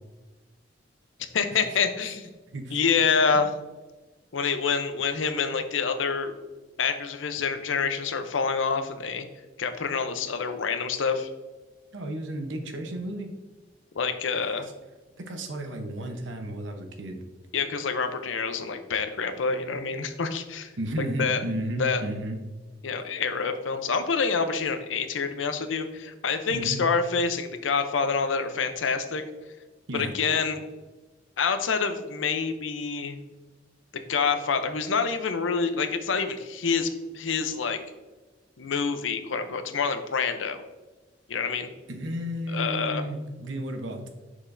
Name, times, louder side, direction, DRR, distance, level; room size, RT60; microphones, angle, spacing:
voice 1, 1.3-2.3 2.7-3.5 4.3-6.3 6.8-9.3 9.6-11.3 14.0-14.7 17.5-20.7 21.2-21.4 21.8-22.0 22.8-29.2 29.9-30.6 31.4-33.2 33.9-37.8 38.6-40.6 41.3-41.7 42.5-43.1, left 5 dB, 90° left, 9 dB, 0.6 m, -27 dB
voice 2, 11.9-13.3 15.2-17.2 20.8-22.4 26.5-26.8 29.9-30.1 41.9-44.1, right 1 dB, 80° right, 5 dB, 0.9 m, -33 dB
6.2 x 6.0 x 2.6 m, 1.2 s
head